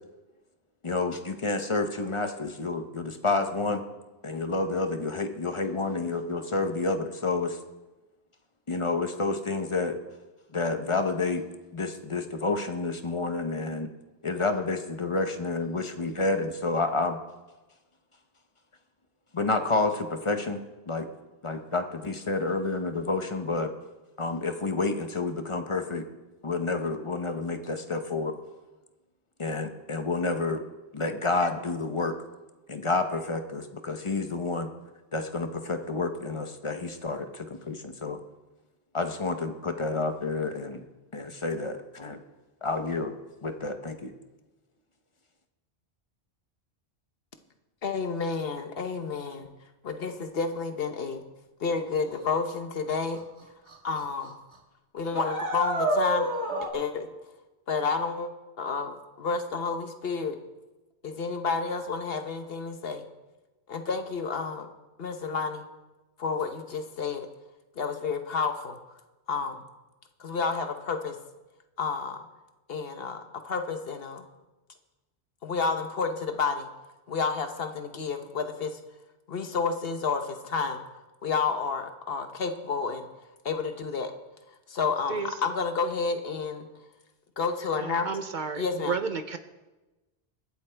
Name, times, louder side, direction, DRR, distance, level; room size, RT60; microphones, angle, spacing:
voice 1, 0.8-3.8 4.2-7.6 8.7-10.0 10.5-11.4 11.7-13.9 14.2-17.2 19.3-21.1 21.4-23.7 24.2-26.1 26.4-28.3 29.4-30.6 30.9-32.2 32.7-34.7 35.1-38.2 38.9-40.8 41.1-42.2 42.6-43.1 43.4-44.1, left 3 dB, 30° left, 7 dB, 0.8 m, -29 dB
voice 2, 47.8-49.5 49.8-51.2 51.6-53.2 53.8-54.4 54.9-56.3 56.7-57.1 57.7-58.3 58.6-60.4 61.0-63.0 63.7-64.7 65.0-65.7 66.2-67.3 67.8-68.8 69.3-69.6 70.2-71.2 71.8-72.2 72.7-74.2 75.4-76.7 77.1-78.8 79.3-80.8 81.2-83.1 83.4-84.1 84.7-86.7 87.4-88.1 88.5-89.0, left 5 dB, 65° left, 7 dB, 1.1 m, -30 dB
sound 1, 53.2-53.3 53.7-54.0 54.2-54.3 55.1-56.7, right 1 dB, 90° right, 2.0 m, -28 dB
voice 3, 87.8-89.4, right 5 dB, 55° right, 9 dB, 0.7 m, -32 dB
23.0 x 8.2 x 3.4 m, 1.1 s
omnidirectional pair, 1.1 m